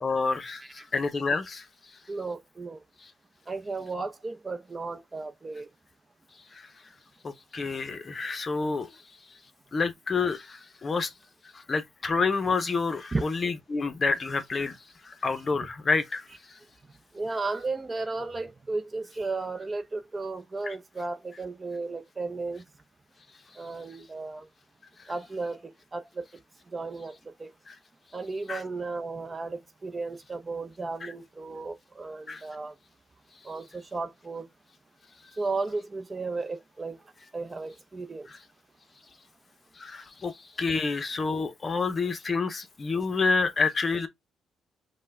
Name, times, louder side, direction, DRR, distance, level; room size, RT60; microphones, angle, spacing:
voice 1, 0.0-1.7 3.0-3.1 6.5-6.7 7.2-9.0 9.7-11.1 11.5-14.8 15.0-16.6 20.6-20.8 27.7-27.8 28.5-28.6 31.0-31.1 32.3-32.4 38.3-38.4 39.8-44.1, left 4 dB, 35° left, 0.7 m, -29 dB
voice 2, 2.1-2.8 3.5-5.7 13.1-13.2 17.1-22.6 23.6-24.5 25.1-26.3 26.7-27.5 28.1-32.7 33.4-34.5 35.4-37.0 37.3-38.3, right 3 dB, 25° right, 0.6 m, -34 dB
5.3 x 2.2 x 3.4 m
cardioid pair, 90°, 0 cm